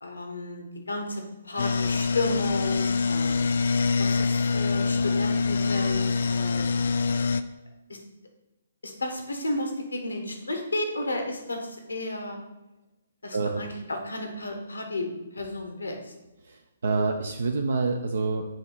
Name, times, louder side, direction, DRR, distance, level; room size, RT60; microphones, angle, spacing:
voice 1, 0.0-3.4 4.0-6.7 7.9-8.0 8.8-12.4 13.2-15.1 15.3-16.0, left 2 dB, 85° left, 4 dB, 1.2 m, -32 dB
sound 1, 1.6-7.4, left 4 dB, 65° left, 0.4 m, -25 dB
voice 2, 13.3-13.6 16.4-18.5, right 4 dB, 70° right, 4 dB, 0.5 m, -27 dB
7.0 x 2.9 x 5.6 m, 1.0 s
figure-of-eight pair, 130°, 0 cm